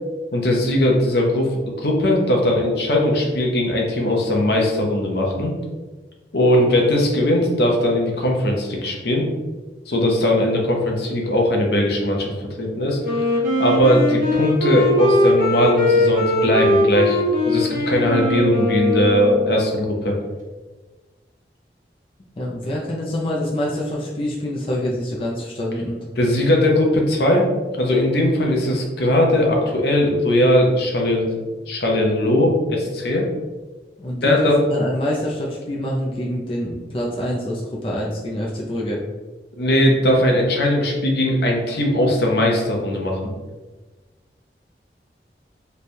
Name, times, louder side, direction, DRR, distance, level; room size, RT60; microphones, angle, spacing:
voice 1, 0.3-5.5 6.3-9.3 9.9-13.0 13.6-17.2 17.4-20.2 26.2-31.3 31.7-33.2 34.2-34.5 39.6-43.3, left 1 dB, 70° left, 0 dB, 0.7 m, -19 dB
Wind instrument woodwind instrument, 13.0-19.7, left 1 dB, 50° right, 0.9 m, -20 dB
voice 2, 22.4-26.0 34.0-39.0, left 1 dB, 30° left, -4 dB, 0.5 m, -26 dB
3.2 x 2.2 x 4.2 m, 1.3 s
head